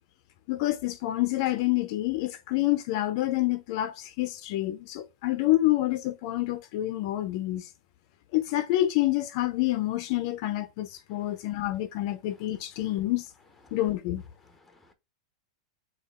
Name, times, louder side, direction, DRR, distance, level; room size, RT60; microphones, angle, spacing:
voice 1, 0.5-7.7 8.3-13.3 13.7-14.2, left 16 dB, 55° left, 0.4 m, -27 dB
voice 2, 11.1-11.7 13.6-13.8 14.4-14.9, left 2 dB, 5° left, 0.6 m, -60 dB
3.5 x 2.3 x 3.5 m
hypercardioid pair, 135°, 3 cm